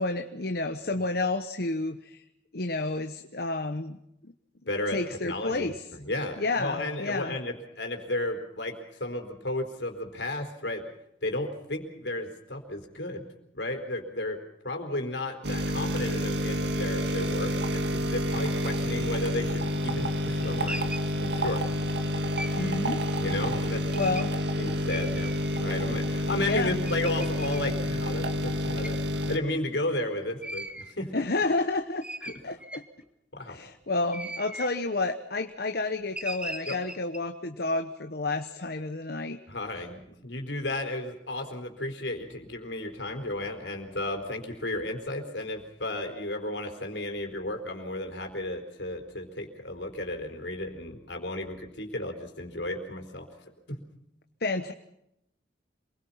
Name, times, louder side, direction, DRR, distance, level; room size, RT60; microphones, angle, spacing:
voice 1, 0.0-2.2 2.5-4.0 4.2-4.3 4.9-5.7 6.4-7.4 22.6-23.0 23.9-24.3 26.4-26.8 31.1-32.0 32.4-32.8 33.5-39.4 54.4-54.7, left 2 dB, 60° left, 7 dB, 1.1 m, -30 dB
voice 2, 4.7-10.9 11.2-13.2 13.5-14.4 14.6-20.9 21.1-21.6 23.2-23.8 24.6-29.0 29.3-31.3 32.2-32.4 33.3-33.6 36.7-36.8 39.5-53.3 53.7-53.8, left 1 dB, 75° left, 4 dB, 4.4 m, -33 dB
sound 1, 15.4-29.4, equal, 65° right, 2.0 m, -29 dB
sound 2, 20.4-21.1 22.4-22.7 23.9-24.3 24.9-25.6 26.2-26.3 26.8-27.6 28.8-29.0 30.4-30.9 31.5-31.6 32.0-33.0 33.9-34.7 36.1-37.2, right 1 dB, 5° right, 1.5 m, -39 dB
27.5 x 22.0 x 5.8 m, 0.80 s
head